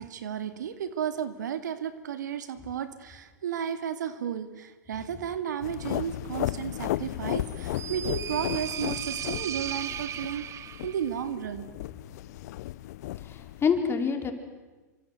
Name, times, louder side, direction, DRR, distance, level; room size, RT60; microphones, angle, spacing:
voice 1, 0.0-11.7, right 8 dB, 80° right, 11 dB, 2.3 m, -33 dB
sound 1, 5.6-13.7, left 15 dB, 65° left, 0.8 m, -35 dB
sound 2, 7.4-11.1, right 10 dB, 30° right, 1.0 m, -37 dB
voice 2, 13.2-14.3, left 6 dB, 25° left, 5 dB, 4.5 m, -27 dB
27.5 x 25.0 x 8.0 m, 1.2 s
hypercardioid pair, 105°, 10 cm